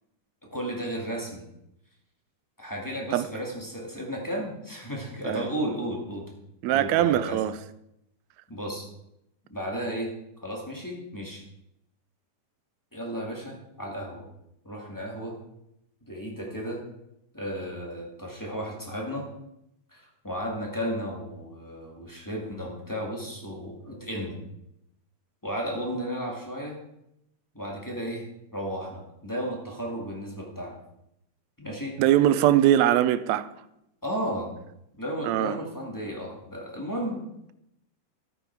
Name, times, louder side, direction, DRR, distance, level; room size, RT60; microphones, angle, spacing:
voice 1, 0.5-1.4 2.6-6.3 6.7-7.4 8.5-8.9 9.5-10.1 10.4-11.4 12.9-14.3 14.6-15.4 16.0-16.8 17.3-19.3 19.9-24.4 25.4-26.8 27.5-28.3 28.5-30.8 31.6-31.9 34.0-34.5 35.0-37.2, equal, 10° left, 1.5 m, -34 dB
voice 2, 6.6-7.6 32.0-33.5 35.2-35.6, right 12 dB, 80° right, 1.6 m, -21 dB
13.0 x 8.9 x 4.6 m
omnidirectional pair, 3.7 m